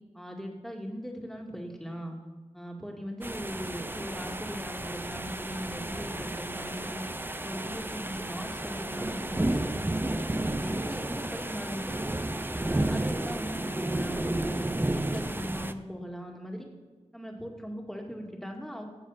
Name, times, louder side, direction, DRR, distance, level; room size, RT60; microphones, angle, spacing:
voice 1, 0.1-2.2 2.5-7.1 7.4-11.9 12.5-16.7 17.1-18.9, equal, 5° left, 0 dB, 2.2 m, -39 dB
sound 1, 3.2-15.7, right 1 dB, 15° right, 0.6 m, -32 dB
15.0 x 7.4 x 5.8 m, 1.4 s
wide cardioid pair, 70°, 12 cm